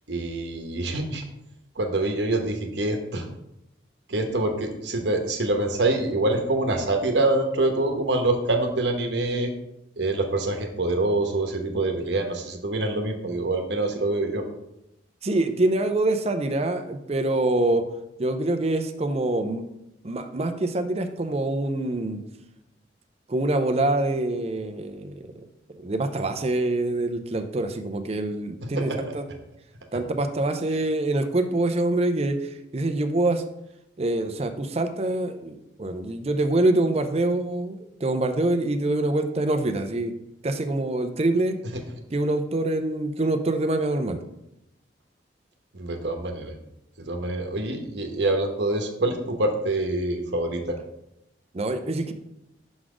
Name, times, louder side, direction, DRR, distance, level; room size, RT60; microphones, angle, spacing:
voice 1, 0.1-1.2 1.8-3.3 4.1-9.5 10.0-14.4 28.6-29.2 45.7-46.5 47.0-50.8, right 2 dB, 75° right, 4 dB, 1.0 m, -25 dB
voice 2, 15.2-17.8 18.2-19.6 20.0-22.2 23.3-25.4 25.8-29.3 29.9-33.4 34.0-40.1 40.4-41.6 42.1-44.2 51.5-52.1, right 2 dB, 35° right, 8 dB, 0.5 m, -25 dB
6.0 x 4.0 x 4.9 m, 0.85 s
head